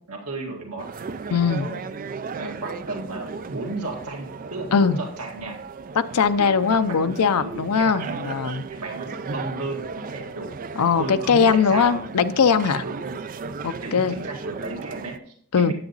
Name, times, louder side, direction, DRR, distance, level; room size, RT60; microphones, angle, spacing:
voice 1, 0.1-1.8 2.3-5.6 6.4-8.4 8.7-10.5 11.0-12.1 12.8-13.2 13.8-15.7, right 2 dB, 85° right, 1 dB, 1.9 m, -34 dB
sound 1, 0.8-15.2, right 5 dB, 40° right, 0.4 m, -36 dB
voice 2, 1.3-1.7 4.7-5.0 6.0-8.6 10.8-12.8 13.6-14.1 15.5-15.7, left 6 dB, 80° left, 11 dB, 0.6 m, -20 dB
10.0 x 8.1 x 4.0 m, 0.64 s
head